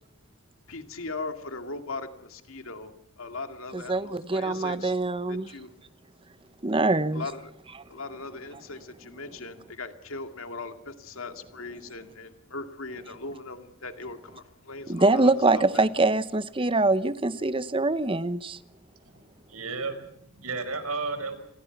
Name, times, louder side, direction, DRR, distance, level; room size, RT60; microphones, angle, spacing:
voice 1, 0.7-4.9 5.3-5.7 7.1-7.5 7.9-15.9, left 3 dB, 70° left, 2.3 m, -39 dB
voice 2, 3.7-5.5 6.6-7.2 14.9-18.6, right 2 dB, 25° right, 0.9 m, -24 dB
voice 3, 19.5-21.3, right 4 dB, 85° right, 4.8 m, -33 dB
29.0 x 21.5 x 6.0 m
head